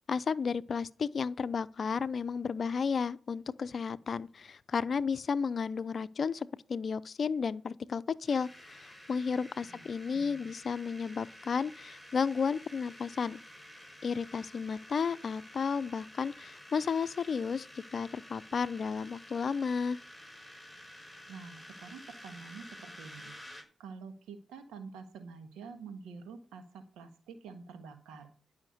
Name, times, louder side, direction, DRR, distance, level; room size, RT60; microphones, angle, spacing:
voice 1, 0.1-13.4 14.0-17.7 17.9-20.0, left 5 dB, 60° left, 0.6 m, -33 dB
sound 1, 8.3-23.6, left 1 dB, ahead, 4.8 m, -51 dB
voice 2, 10.1-10.5 21.3-23.3 23.8-28.3, right 5 dB, 90° right, 1.6 m, -48 dB
12.0 x 5.8 x 8.0 m
supercardioid pair, 45°, 0 cm